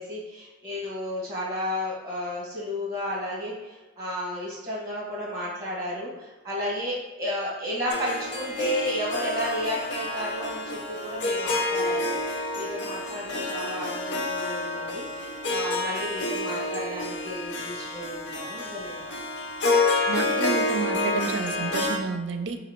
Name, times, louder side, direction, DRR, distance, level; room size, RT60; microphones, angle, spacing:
voice 1, 0.0-19.1, left 1 dB, 15° right, -6 dB, 1.4 m, -33 dB
Harp, 7.9-22.0, left 2 dB, 70° left, 0.6 m, -29 dB
voice 2, 20.1-22.6, right 4 dB, 70° right, 6 dB, 0.5 m, -30 dB
4.0 x 2.8 x 4.3 m, 1.2 s
head